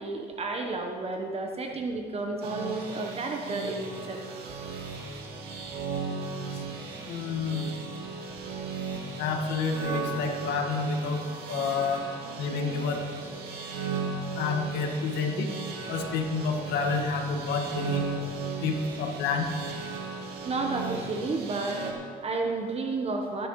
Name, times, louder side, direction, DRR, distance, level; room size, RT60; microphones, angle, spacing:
voice 1, 0.0-4.2 20.4-23.5, right 3 dB, 35° right, 3 dB, 1.1 m, -32 dB
sound 1, 2.4-21.9, right 4 dB, 75° right, 2.3 m, -36 dB
voice 2, 7.1-7.7 9.2-11.2 11.5-12.0 12.4-13.0 14.4-15.5 15.9-18.1 18.6-19.5, left 4 dB, 80° left, 3 dB, 1.7 m, -29 dB
22.5 x 10.0 x 3.2 m, 2.2 s
cardioid pair, 110°, 17 cm